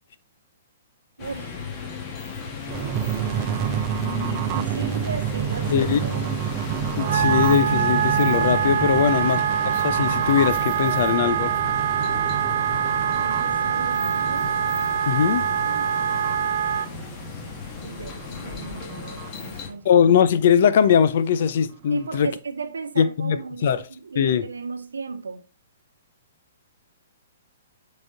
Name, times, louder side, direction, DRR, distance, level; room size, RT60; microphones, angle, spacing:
sound 1, 1.2-19.7, left 5 dB, 35° left, 2.1 m, -35 dB
voice 1, 1.2-1.6 4.2-6.4 9.0-9.4 13.0-14.5 15.7-15.9 17.8-19.8 21.9-25.5, right 4 dB, 85° right, 1.0 m, -36 dB
sound 2, 2.7-17.9 18.4-18.5 18.6-19.3, right 9 dB, 35° right, 0.7 m, -30 dB
voice 2, 5.7-6.0 7.0-11.5 15.1-15.5 19.8-22.3 23.0-23.8 24.1-24.5, left 8 dB, 60° left, 0.7 m, -20 dB
Wind instrument woodwind instrument, 7.0-16.9, right 9 dB, 60° right, 0.3 m, -24 dB
7.7 x 4.2 x 4.0 m
hypercardioid pair, 130°, 0 cm